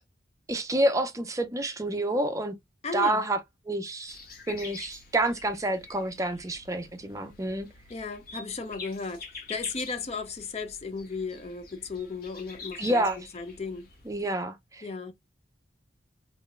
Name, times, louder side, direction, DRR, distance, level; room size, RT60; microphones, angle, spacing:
voice 1, 0.5-2.5 2.9-3.4 3.7-4.2 4.5-7.7 12.8-13.2 14.1-14.9, right 1 dB, 15° right, 0.5 m, -28 dB
voice 2, 2.8-3.2 7.9-13.0 13.3-13.9 14.8-15.1, left 4 dB, 35° left, 0.6 m, -35 dB
sound 1, 4.1-14.2, left 4 dB, 50° left, 1.3 m, -46 dB
3.7 x 3.2 x 2.4 m
head